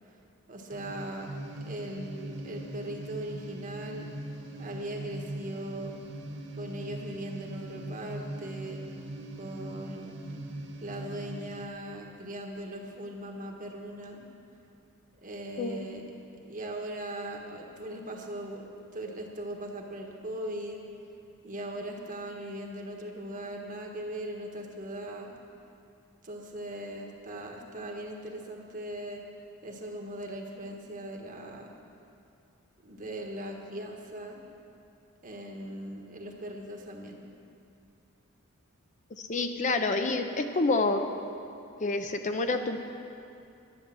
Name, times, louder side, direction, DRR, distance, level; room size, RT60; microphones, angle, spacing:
voice 1, 0.5-1.3 1.7-4.1 4.6-5.9 6.6-8.8 9.4-10.2 10.8-14.2 15.2-16.0 16.4-20.8 21.4-25.3 26.2-29.2 29.6-31.7 32.8-34.4 35.2-37.2, right 1 dB, 40° right, 1 dB, 1.4 m, -39 dB
sound 1, 0.7-11.7, right 1 dB, 55° right, 0.9 m, -41 dB
voice 2, 39.3-41.0 41.8-42.8, left 3 dB, 35° left, 6 dB, 0.6 m, -28 dB
11.0 x 10.5 x 7.6 m, 2.6 s
head